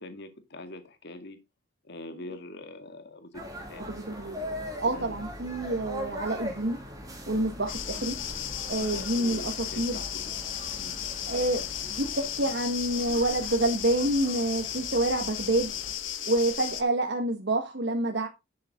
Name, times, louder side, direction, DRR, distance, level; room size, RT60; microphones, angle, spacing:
voice 1, 0.0-1.4 1.8-3.4 3.7-3.8 4.9-5.3 8.8-10.2 10.8-11.0, left 2 dB, 60° left, 2.1 m, -44 dB
sound 1, 3.3-15.9, equal, 20° right, 2.9 m, -41 dB
voice 2, 3.9-4.4 4.8-6.8 7.3-8.2 8.7-10.0 11.3-15.7 16.2-18.3, right 1 dB, 60° right, 1.5 m, -28 dB
sound 2, 7.7-16.8, left 10 dB, 85° left, 1.5 m, -35 dB
11.0 x 7.4 x 3.7 m
head